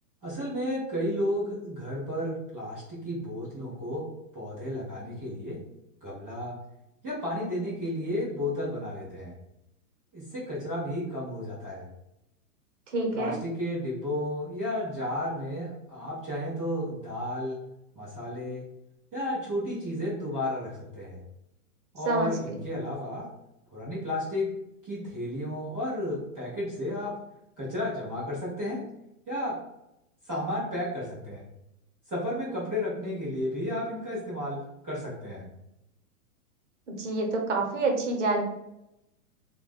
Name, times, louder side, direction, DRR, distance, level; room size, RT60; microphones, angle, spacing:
voice 1, 0.2-4.1 4.3-5.6 6.0-6.6 7.0-9.3 10.1-11.9 13.1-17.6 17.9-18.6 19.1-21.2 21.9-23.3 23.7-24.5 24.8-27.1 27.6-28.8 29.3-29.6 30.2-31.4 32.1-35.4, left 1 dB, 10° right, -12 dB, 0.5 m, -32 dB
voice 2, 12.9-13.4 22.1-22.3 36.9-38.4, right 2 dB, 50° right, 2 dB, 1.0 m, -27 dB
3.1 x 2.3 x 4.2 m, 0.86 s
hypercardioid pair, 170°, 46 cm